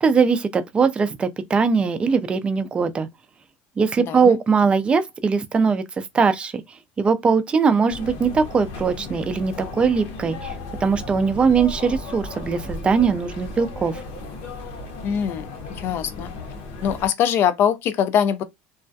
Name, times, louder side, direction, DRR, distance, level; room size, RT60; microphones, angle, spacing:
voice 1, 0.0-3.1 3.8-5.8 6.1-6.6 7.0-10.5 10.8-14.0, right 5 dB, 20° right, 0.3 m, -20 dB
voice 2, 4.0-4.4 15.0-15.5 15.8-16.3 16.8-18.4, left 8 dB, 50° left, 0.4 m, -22 dB
sound 1, 7.9-17.1, left 2 dB, 70° left, 0.8 m, -35 dB
2.3 x 2.2 x 2.6 m
supercardioid pair, 115°, 5 cm